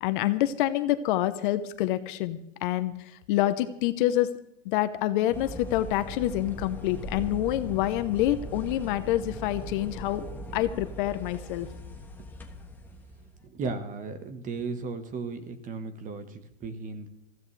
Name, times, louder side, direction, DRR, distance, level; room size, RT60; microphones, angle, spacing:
voice 1, 0.0-2.9 3.3-4.3 4.7-10.2 10.5-11.7, left 14 dB, 40° left, 11 dB, 1.0 m, -27 dB
sound 1, 5.3-13.4, right 1 dB, 5° left, 1.3 m, -40 dB
voice 2, 13.5-17.1, right 4 dB, 20° right, 9 dB, 1.4 m, -35 dB
21.0 x 15.5 x 3.3 m, 0.81 s
hypercardioid pair, 140°, 38 cm